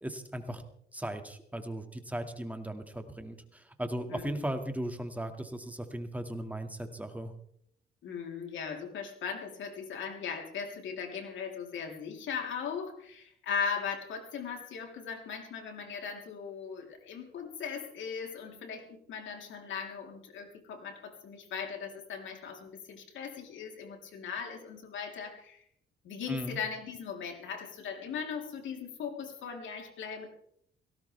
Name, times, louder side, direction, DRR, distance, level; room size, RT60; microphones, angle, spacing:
voice 1, 0.0-0.6 0.9-7.3 26.3-26.6, right 1 dB, 5° right, 6 dB, 2.2 m, -37 dB
voice 2, 4.1-4.5 8.0-25.7 26.0-30.3, left 6 dB, 75° left, 2 dB, 3.7 m, -38 dB
18.5 x 17.0 x 3.5 m, 0.68 s
cardioid pair, 90°, 20 cm